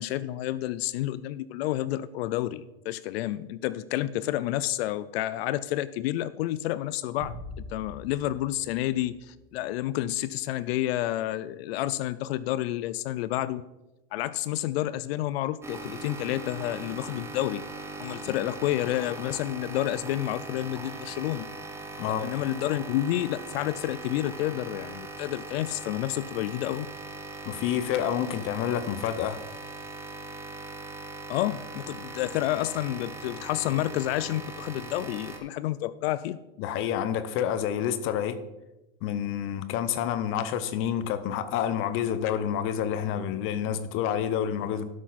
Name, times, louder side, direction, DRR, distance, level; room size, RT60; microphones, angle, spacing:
voice 1, 0.0-7.3 7.7-13.6 14.1-17.6 18.0-21.5 22.2-26.9 31.3-36.4, left 14 dB, 75° left, 17 dB, 0.5 m, -30 dB
sound 1, 7.2-9.7, left 1 dB, 75° right, 2.2 m, -43 dB
sound 2, 15.6-35.4, right 3 dB, 10° right, 0.9 m, -40 dB
voice 2, 27.5-29.4 36.6-38.4 39.0-44.9, left 9 dB, 40° left, 13 dB, 0.7 m, -28 dB
12.0 x 6.2 x 4.1 m, 1.0 s
supercardioid pair, 140°, 31 cm